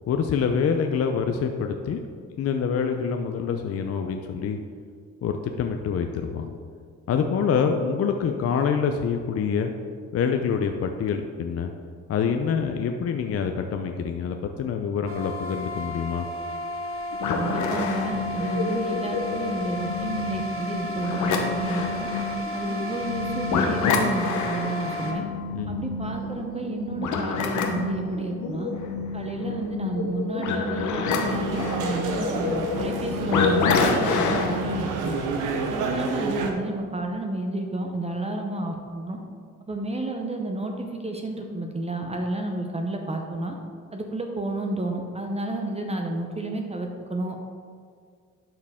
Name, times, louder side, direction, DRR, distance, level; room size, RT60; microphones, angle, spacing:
voice 1, 0.1-2.0 2.4-4.6 5.2-6.5 7.1-9.7 10.1-11.7 12.1-16.3 25.5-25.8, left 6 dB, 50° left, 5 dB, 0.6 m, -26 dB
sound 1, 15.1-25.1, left 1 dB, 45° right, 1.2 m, -33 dB
sound 2, 17.1-34.8, left 4 dB, 75° left, 1.0 m, -28 dB
voice 2, 17.3-22.1 22.5-25.2 25.7-28.7 29.1-35.2 35.7-39.2 39.7-43.6 43.9-47.4, right 2 dB, 20° right, 2 dB, 0.8 m, -31 dB
sound 3, 31.2-36.5, right 4 dB, 90° right, 0.9 m, -29 dB
12.0 x 4.5 x 3.6 m, 2.1 s
cardioid pair, 90°, 30 cm